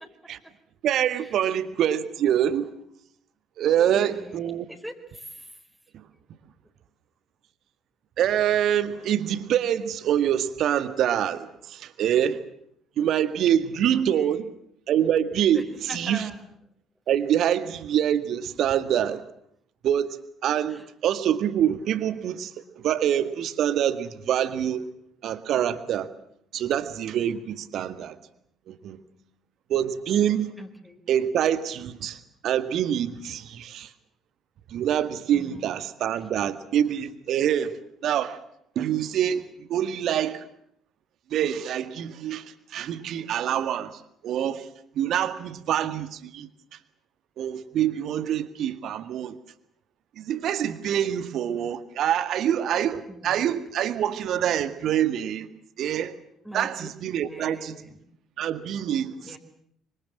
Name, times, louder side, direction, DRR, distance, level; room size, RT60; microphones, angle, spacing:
voice 1, 0.8-2.7 3.6-4.7 8.2-12.4 13.0-14.5 14.9-16.3 17.1-19.2 19.8-20.1 20.4-24.8 25.2-26.1 26.5-28.2 28.7-29.0 29.7-30.5 31.1-32.2 32.4-33.9 34.7-37.8 38.0-38.4 38.8-40.4 41.3-42.4 42.7-44.0 44.2-44.7 45.0-46.5 47.4-49.4 50.2-55.5 55.8-56.2 56.5-57.8 58.4-59.4, right 10 dB, 50° right, 12 dB, 1.9 m, -25 dB
voice 2, 3.6-5.6 13.9-14.5 15.5-16.4 20.7-20.9 30.6-31.0 35.3-35.7 53.1-53.4 56.4-56.9 57.2-58.0 59.2-59.4, equal, ahead, 3 dB, 4.3 m, -42 dB
25.0 x 25.0 x 7.5 m, 0.71 s
figure-of-eight pair, 50°, 0 cm